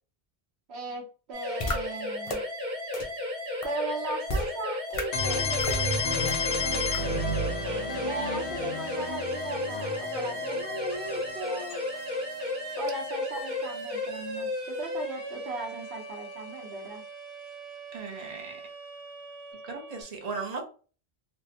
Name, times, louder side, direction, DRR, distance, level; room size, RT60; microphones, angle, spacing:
voice 1, 0.7-2.4 3.6-7.5 8.0-11.8 12.8-17.0, right 3 dB, 75° right, -1 dB, 1.2 m, -38 dB
sound 1, 1.3-20.0, left 2 dB, 60° right, 1.2 m, -35 dB
sound 2, 1.6-1.8 2.3-2.4 2.9-3.0 3.6-3.7 4.3-4.5 4.9-5.0 5.6-5.8 6.3-6.4 6.9-7.0, left 1 dB, 40° left, 0.5 m, -30 dB
sound 3, 5.1-14.9, left 2 dB, 80° left, 1.0 m, -33 dB
voice 2, 7.6-8.2 17.9-18.6 19.6-20.6, right 4 dB, 45° right, 3 dB, 0.7 m, -38 dB
3.2 x 2.1 x 2.8 m, 0.38 s
omnidirectional pair, 1.1 m